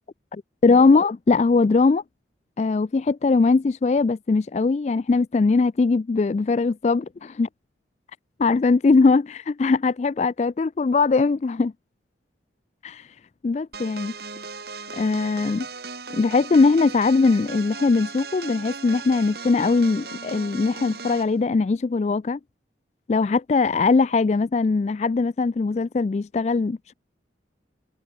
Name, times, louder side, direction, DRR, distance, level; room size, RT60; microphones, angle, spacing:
voice 1, 0.6-2.0 2.6-7.0 7.4-7.5 8.4-11.7 12.8-13.1 13.4-14.1 14.9-15.7 16.1-22.4 23.1-26.9, left 4 dB, 35° left, 0.3 m, -20 dB
sound 1, 13.7-21.3, right 4 dB, 55° right, 3.8 m, -37 dB
head